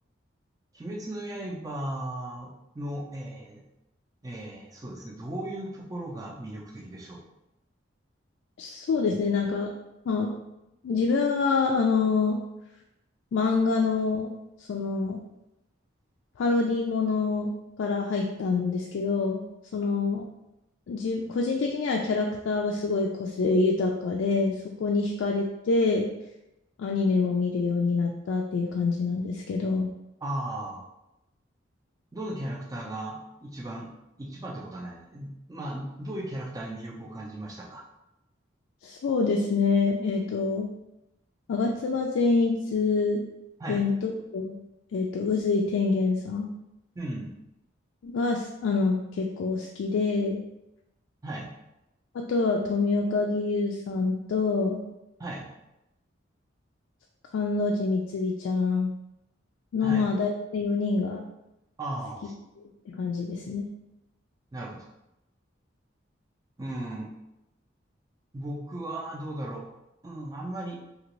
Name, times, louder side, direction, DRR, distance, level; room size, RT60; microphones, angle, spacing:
voice 1, 0.7-3.6 4.2-7.2 30.2-30.8 32.1-33.9 34.2-37.8 43.6-43.9 47.0-47.3 51.2-51.5 55.2-55.5 59.8-60.0 61.8-62.3 64.5-64.9 66.6-67.1 68.3-69.6 70.0-70.8, right 1 dB, 20° right, -1 dB, 0.4 m, -36 dB
voice 2, 8.6-9.7 10.1-10.3 10.8-12.4 13.3-14.3 14.7-15.2 16.4-17.5 17.8-19.4 19.7-20.3 20.9-26.1 26.8-29.9 38.8-40.7 41.5-43.2 43.7-44.6 44.9-46.5 48.0-50.4 52.1-54.8 57.3-58.9 59.7-61.2 62.9-63.7, left 4 dB, 80° left, 0 dB, 0.3 m, -26 dB
2.8 x 2.5 x 3.0 m, 0.91 s
head